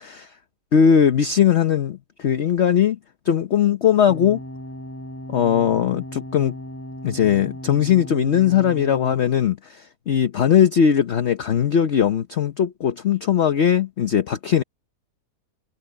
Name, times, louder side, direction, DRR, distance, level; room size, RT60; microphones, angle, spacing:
voice 1, 0.7-3.0 3.2-4.4 5.3-6.5 7.0-14.6, left 8 dB, 50° left, 1.0 m, -19 dB
sound 1, 4.1-9.1, equal, 10° left, 3.1 m, -36 dB
omnidirectional pair, 1.7 m